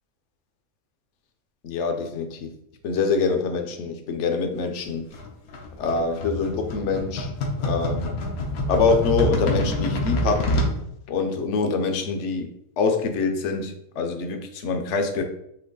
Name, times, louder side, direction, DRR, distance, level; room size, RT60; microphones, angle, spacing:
voice 1, 1.6-2.5 2.8-5.0 5.8-7.3 7.6-8.1 8.7-10.5 11.1-12.5 12.8-15.2, left 4 dB, 60° left, 5 dB, 0.9 m, -25 dB
sound 1, 5.1-10.7, left 1 dB, 85° left, 1.4 m, -26 dB
4.6 x 3.0 x 3.8 m, 0.77 s
omnidirectional pair, 1.5 m